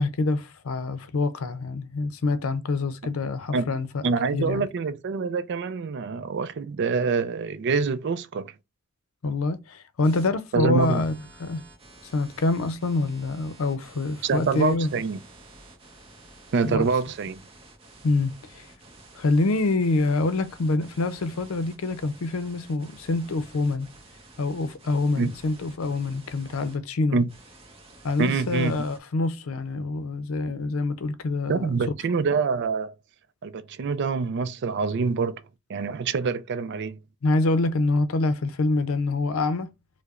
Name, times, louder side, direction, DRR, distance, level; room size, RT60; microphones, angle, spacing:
voice 1, 0.0-4.7 9.2-11.1 11.4-11.6 12.0-14.9 16.6-16.9 18.0-18.7 19.1-23.9 24.4-27.2 28.0-31.7 37.2-39.7, left 2 dB, 85° left, 0.6 m, -26 dB
voice 2, 4.0-8.5 10.5-11.0 14.2-15.2 16.5-17.4 25.2-25.3 27.1-27.3 28.2-28.9 31.5-32.9 33.4-35.4 35.7-37.0, right 4 dB, 55° right, 0.4 m, -26 dB
sound 1, 10.0-10.3 10.8-26.8 27.3-29.0, right 2 dB, 30° right, 0.8 m, -50 dB
4.6 x 2.1 x 2.4 m
head